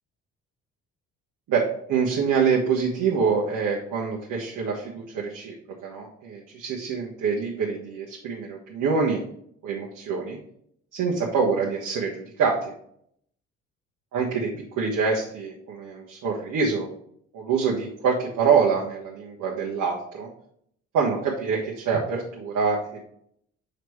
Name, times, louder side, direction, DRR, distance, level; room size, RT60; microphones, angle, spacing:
voice 1, 1.5-5.5 5.8-9.2 9.6-10.4 10.9-12.7 14.1-16.9 17.3-20.3 20.9-23.0, right 5 dB, 65° right, -3 dB, 1.2 m, -25 dB
6.5 x 4.6 x 3.2 m, 0.68 s
hypercardioid pair, 55°, 33 cm